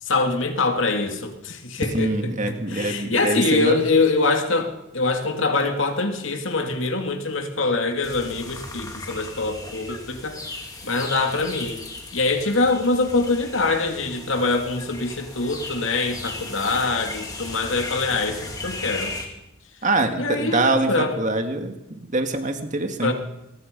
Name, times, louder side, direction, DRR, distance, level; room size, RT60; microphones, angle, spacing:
voice 1, 0.0-2.1 2.5-10.4 10.8-11.8 12.1-19.1 20.2-21.2 23.0-23.1, left 3 dB, 65° left, 4 dB, 2.8 m, -24 dB
voice 2, 1.9-3.9 19.8-23.1, right 2 dB, 35° right, 6 dB, 2.1 m, -24 dB
sound 1, 8.0-19.3, left 2 dB, 15° left, 3.2 m, -36 dB
25.5 x 21.0 x 5.4 m, 0.93 s
head